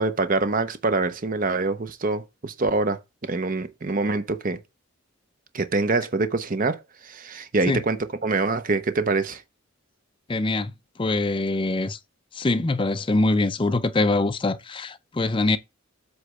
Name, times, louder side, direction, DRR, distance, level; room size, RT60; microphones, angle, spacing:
voice 1, 0.0-4.6 5.5-9.4, right 3 dB, 40° right, 0.8 m, -25 dB
voice 2, 10.3-10.7 11.0-12.0 12.3-15.6, left 2 dB, 25° left, 0.4 m, -23 dB
7.9 x 3.3 x 6.3 m
head